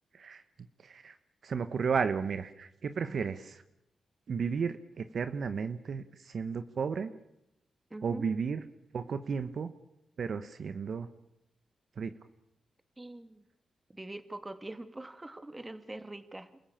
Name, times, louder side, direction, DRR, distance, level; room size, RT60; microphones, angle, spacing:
voice 1, 0.8-1.2 1.4-3.6 4.3-7.1 8.0-8.6 8.9-9.7 10.2-11.1 12.0-12.1, right 6 dB, 65° right, 11 dB, 1.1 m, -33 dB
voice 2, 7.9-8.3 13.0-13.5 13.9-16.6, right 2 dB, 20° right, 10 dB, 2.5 m, -44 dB
28.0 x 14.5 x 8.8 m, 0.87 s
cardioid pair, 60°, 0 cm